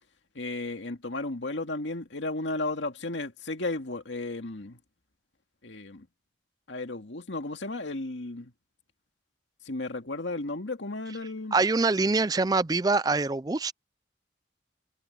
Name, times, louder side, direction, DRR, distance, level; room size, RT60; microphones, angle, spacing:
voice 1, 0.4-4.8 5.6-6.1 6.7-8.5 9.6-11.6, left 2 dB, 90° left, 2.2 m, -34 dB
voice 2, 11.5-13.7, right 3 dB, 20° right, 0.4 m, -24 dB
head